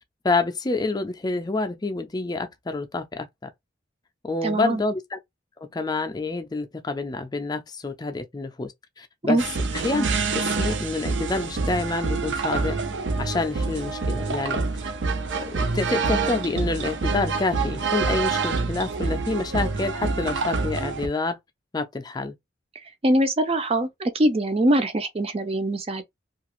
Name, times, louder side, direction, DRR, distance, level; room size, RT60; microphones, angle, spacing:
voice 1, 0.2-3.5 4.2-5.2 5.6-8.7 9.0-9.4 9.7-10.0 10.3-12.8 13.2-14.7 15.5-21.4 21.7-22.3, left 3 dB, 20° left, 0.4 m, -27 dB
voice 2, 4.4-4.8 9.3-9.4 23.0-26.0, right 1 dB, 30° right, 0.5 m, -22 dB
sound 1, 9.4-21.1, right 4 dB, 75° right, 0.6 m, -26 dB
2.8 x 2.4 x 3.0 m
head